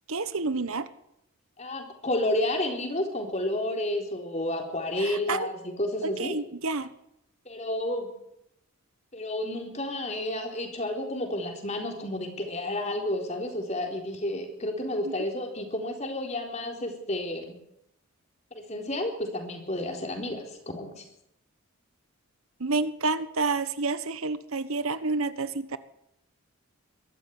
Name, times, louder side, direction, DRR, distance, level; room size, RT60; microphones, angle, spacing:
voice 1, 0.1-0.9 5.0-5.5 6.0-6.9 22.6-25.8, right 3 dB, 70° right, 13 dB, 1.3 m, -29 dB
voice 2, 1.6-6.4 7.5-8.1 9.1-17.5 18.5-21.0, left 1 dB, 30° left, 3 dB, 4.0 m, -31 dB
22.5 x 14.0 x 9.5 m, 0.79 s
head